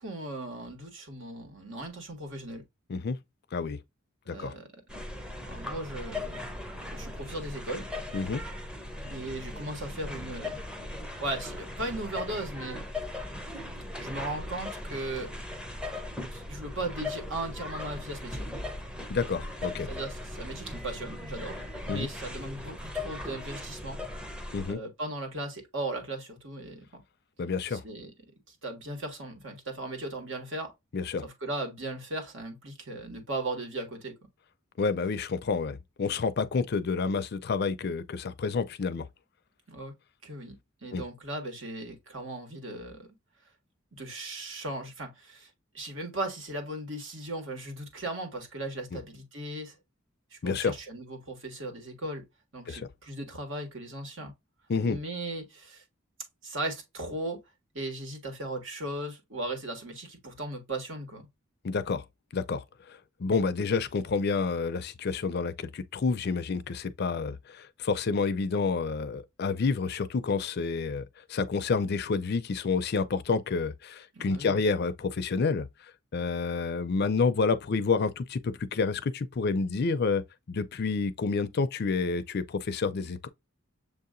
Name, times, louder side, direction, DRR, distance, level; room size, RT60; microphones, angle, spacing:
voice 1, 0.0-2.6 4.3-4.8 5.5-7.8 9.1-10.6 11.2-12.8 14.0-15.3 16.3-18.4 19.8-21.6 21.9-24.0 24.7-27.0 27.7-28.1 28.5-30.7 31.2-34.1 39.7-39.9 40.2-40.6 40.8-43.1 43.9-49.7 50.3-52.2 52.5-54.3 54.8-55.8 56.4-57.4 57.7-61.3 74.1-74.6, right 2 dB, 70° right, 1.7 m, -37 dB
sound 1, 4.9-24.7, left 2 dB, 5° right, 0.6 m, -38 dB
voice 2, 19.1-19.9 21.9-22.1 24.5-24.8 27.4-27.8 30.9-31.2 34.8-39.1 40.9-41.0 50.4-50.7 52.7-52.8 54.7-55.0 61.6-62.0 62.3-62.6 63.2-71.0 71.3-75.7 76.1-80.2 80.5-83.3, left 4 dB, 55° left, 0.5 m, -29 dB
7.0 x 2.8 x 2.5 m
head